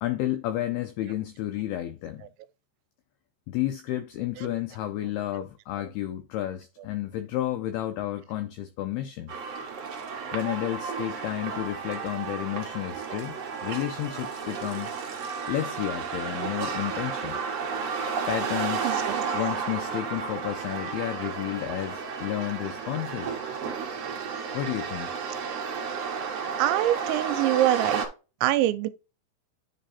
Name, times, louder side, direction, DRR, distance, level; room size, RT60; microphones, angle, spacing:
voice 1, 0.0-2.2 3.5-9.3 10.3-14.9 15.5-17.4 18.3-19.0 19.3-23.4 24.5-25.1, left 13 dB, 90° left, 2.2 m, -31 dB
sound 1, 9.3-28.0, right 6 dB, 65° right, 1.6 m, -32 dB
voice 2, 18.8-19.2 26.6-28.0 28.4-28.9, right 14 dB, 85° right, 2.9 m, -24 dB
10.0 x 3.4 x 4.1 m
omnidirectional pair, 5.3 m